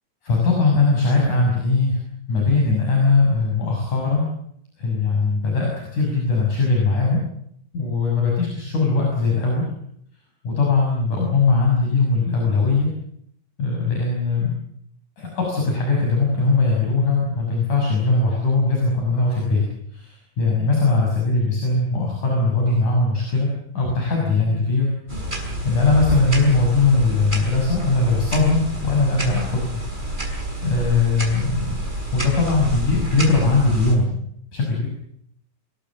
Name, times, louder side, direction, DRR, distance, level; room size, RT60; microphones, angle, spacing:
voice 1, 0.2-2.0 2.3-4.3 4.8-7.2 7.7-9.7 10.4-12.9 13.6-14.5 15.2-19.7 19.9-23.5 23.7-24.9 25.2-29.7 30.3-31.7 32.1-34.2 34.5-34.9, left 3 dB, 50° left, -1 dB, 7.9 m, -20 dB
sound 1, 25.1-34.0, right 1 dB, 10° right, 6.1 m, -29 dB
27.5 x 22.5 x 7.5 m, 0.70 s
omnidirectional pair, 4.3 m